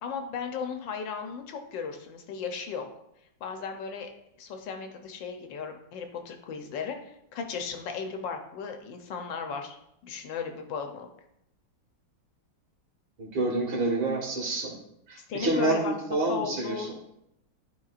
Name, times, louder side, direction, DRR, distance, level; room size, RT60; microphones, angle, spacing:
voice 1, 0.0-2.8 3.4-9.8 10.0-11.1 15.3-16.9, left 5 dB, 75° left, 5 dB, 1.5 m, -36 dB
voice 2, 13.2-14.7 15.1-17.1, right 2 dB, 80° right, -2 dB, 2.5 m, -28 dB
11.0 x 4.5 x 2.5 m, 0.79 s
omnidirectional pair, 2.1 m